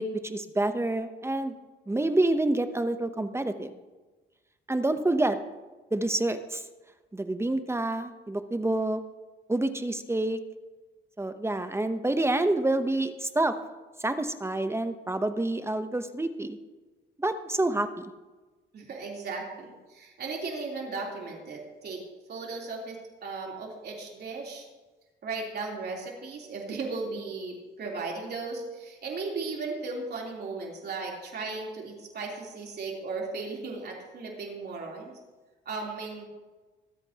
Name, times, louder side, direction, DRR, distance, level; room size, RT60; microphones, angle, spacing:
voice 1, 0.0-1.6 1.9-3.7 4.7-5.4 5.9-6.6 7.1-9.0 9.5-10.4 11.2-13.5 14.0-16.6 17.2-18.1, right 2 dB, 15° right, 10 dB, 0.8 m, -28 dB
voice 2, 18.7-22.0 22.3-24.6 25.2-35.2 35.7-36.2, right 3 dB, 55° right, -1 dB, 3.4 m, -36 dB
24.5 x 8.8 x 2.9 m, 1.2 s
cardioid pair, 90°, 20 cm